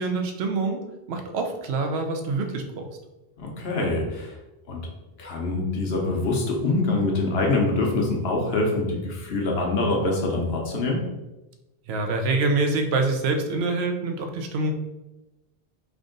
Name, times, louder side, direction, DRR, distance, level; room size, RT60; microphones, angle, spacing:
voice 1, 0.0-2.9 11.9-14.7, right 3 dB, 85° right, 4 dB, 0.9 m, -26 dB
voice 2, 3.4-4.4 4.7-4.8 5.2-11.0, left 2 dB, 75° left, 0 dB, 1.0 m, -25 dB
3.5 x 2.6 x 3.7 m, 1.0 s
omnidirectional pair, 1.0 m